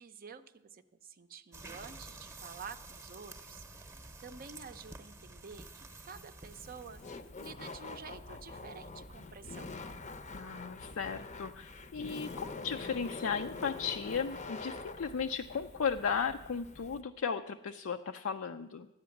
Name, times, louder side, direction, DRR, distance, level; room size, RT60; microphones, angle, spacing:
voice 1, 0.0-7.0 7.4-9.7, right 5 dB, 45° right, 9 dB, 0.5 m, -50 dB
sound 1, 1.5-7.3, right 2 dB, 15° right, 0.8 m, -50 dB
Laughter, 6.5-17.0, left 3 dB, 35° left, 0.6 m, -45 dB
voice 2, 10.3-18.9, left 6 dB, 70° left, 6 dB, 0.4 m, -35 dB
11.5 x 8.5 x 7.1 m, 0.94 s
head